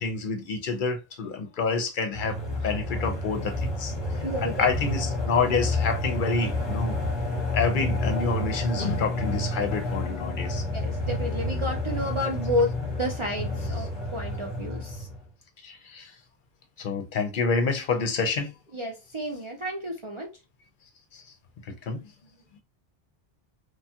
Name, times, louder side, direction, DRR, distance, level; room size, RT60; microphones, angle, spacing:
voice 1, 0.0-2.4 2.6-3.9 4.4-7.0 7.5-10.6 15.6-16.1 16.8-18.5 21.1-21.2 21.7-22.0, left 4 dB, 60° left, 0.7 m, -28 dB
sound 1, 2.1-15.2, left 1 dB, 25° left, 0.9 m, -30 dB
voice 2, 4.2-4.9 10.7-12.7 13.0-15.1 18.7-20.3, left 1 dB, 45° right, 0.4 m, -31 dB
3.2 x 2.2 x 2.7 m
omnidirectional pair, 1.0 m